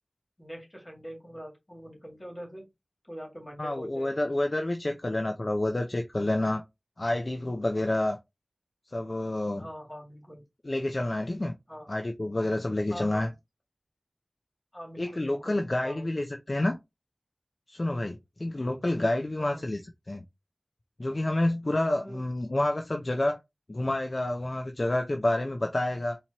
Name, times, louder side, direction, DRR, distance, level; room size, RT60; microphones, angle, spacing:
voice 1, 0.4-2.7 3.0-4.3 9.6-10.4 11.7-11.9 12.9-13.3 14.7-16.2 19.4-19.6 21.9-22.2, equal, 30° left, 2.0 m, -43 dB
voice 2, 3.6-6.6 7.0-8.2 8.9-9.7 10.6-11.5 11.9-13.3 15.0-16.8 17.7-19.8 20.1-20.2 21.0-23.4 23.7-26.2, left 1 dB, 50° left, 0.5 m, -28 dB
4.4 x 2.8 x 2.9 m
wide cardioid pair, 45°, 0 cm